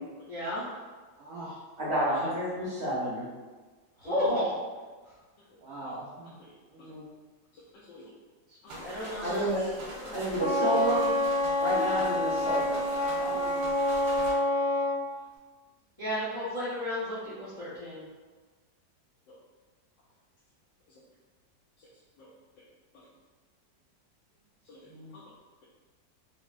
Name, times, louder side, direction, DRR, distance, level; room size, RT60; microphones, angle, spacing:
voice 1, 0.3-0.6 4.0-4.6 8.8-9.5 10.0-10.5 13.3-13.7 16.0-18.0, left 1 dB, 35° left, -11 dB, 0.5 m, -33 dB
voice 2, 1.2-1.6 4.0-4.3 5.6-6.4 6.7-7.1 24.9-25.2, right 1 dB, 85° right, -6 dB, 0.7 m, -42 dB
voice 3, 1.8-3.3 9.2-9.7 10.1-11.1 11.6-12.8 13.2-13.4, right 1 dB, 55° right, -8 dB, 0.9 m, -29 dB
voice 4, 6.4-6.9 7.5-8.1 8.6-8.9 10.0-10.2 13.3-13.4 14.7-14.8 19.3-19.4 20.9-21.0 21.8-21.9 22.2-22.6 22.9-23.1 24.6-25.3, left 2 dB, 80° left, -7 dB, 1.2 m, -54 dB
sound 1, 8.7-14.3, right 1 dB, 70° right, 1.3 m, -43 dB
Wind instrument woodwind instrument, 10.4-15.0, left 1 dB, 50° left, 0.9 m, -27 dB
3.8 x 2.0 x 2.4 m, 1.4 s
omnidirectional pair, 2.0 m